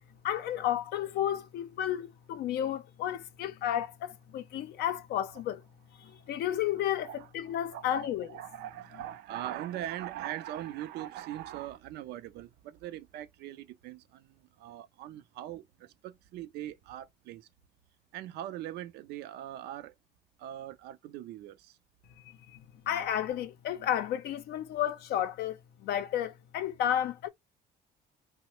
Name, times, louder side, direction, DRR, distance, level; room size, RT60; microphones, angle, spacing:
voice 1, 0.2-5.6 6.0-8.3 22.3-25.6 25.8-27.3, left 11 dB, 70° left, 0.4 m, -32 dB
voice 2, 6.9-7.3 7.6-17.5 18.1-19.9 20.4-21.8, right 12 dB, 75° right, 0.4 m, -41 dB
3.0 x 2.1 x 2.9 m
cardioid pair, 110°, 17 cm